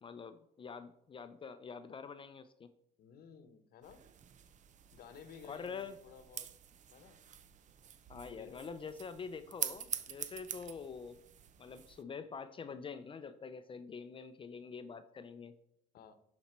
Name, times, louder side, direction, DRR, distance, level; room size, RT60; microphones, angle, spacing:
voice 1, 0.0-2.7 5.4-6.0 8.1-11.2 11.6-15.5, left 5 dB, 30° left, 11 dB, 0.5 m, -46 dB
voice 2, 3.0-4.0 4.9-6.5 6.9-7.2 8.2-8.7 15.9-16.1, left 7 dB, 65° left, 11 dB, 1.0 m, -55 dB
sound 1, 3.8-12.0, right 9 dB, 45° right, 0.6 m, -46 dB
11.0 x 4.3 x 4.4 m, 0.76 s
cardioid pair, 110°, 17 cm